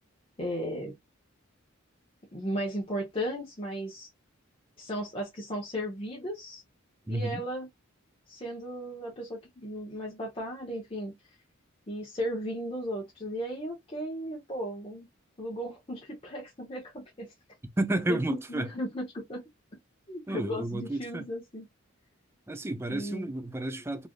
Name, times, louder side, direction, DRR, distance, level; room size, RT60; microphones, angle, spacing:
voice 1, 0.4-0.9 2.3-4.1 4.8-6.6 7.1-7.7 8.3-11.1 11.9-15.1 15.4-17.3 18.1-19.4 20.1-21.7 22.9-23.3, equal, 25° left, 0.8 m, -35 dB
voice 2, 7.1-7.4 17.8-18.7 20.3-21.2 22.5-24.1, right 1 dB, 10° right, 0.3 m, -31 dB
3.2 x 2.5 x 2.3 m
head